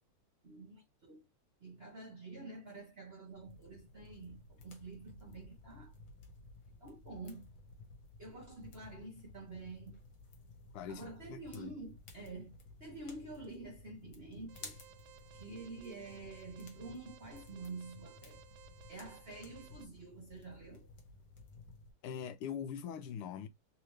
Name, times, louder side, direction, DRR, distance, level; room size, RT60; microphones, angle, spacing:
voice 1, 0.4-1.3 1.6-5.9 6.8-7.5 8.2-10.0 10.9-14.8 15.3-18.4 18.9-20.9, right 3 dB, 40° right, 0.9 m, -48 dB
sound 1, 3.3-21.9, left 3 dB, 60° left, 1.7 m, -55 dB
voice 2, 10.7-11.7 22.0-23.5, left 8 dB, 85° left, 1.5 m, -42 dB
Alarm, 14.5-19.8, right 10 dB, 80° right, 1.5 m, -59 dB
3.8 x 2.9 x 3.1 m
omnidirectional pair, 2.4 m